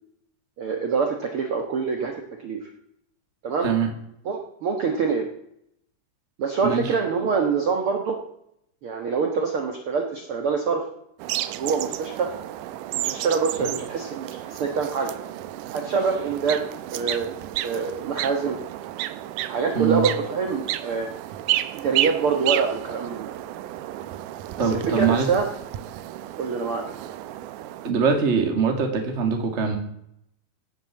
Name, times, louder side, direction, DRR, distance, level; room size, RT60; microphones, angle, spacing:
voice 1, 0.6-2.7 3.4-3.7 4.2-5.3 6.4-8.2 8.8-10.8 11.6-12.3 12.9-15.1 15.7-17.3 17.6-18.6 19.5-21.1 21.7-23.3 24.6-25.5 26.4-26.8, right 5 dB, 55° right, 3 dB, 1.8 m, -25 dB
sound 1, 11.2-27.9, right 14 dB, 80° right, 2.1 m, -32 dB
voice 2, 24.6-25.3 27.8-29.8, right 6 dB, 25° right, 4 dB, 1.7 m, -22 dB
16.5 x 7.7 x 7.2 m, 0.75 s
omnidirectional pair, 3.9 m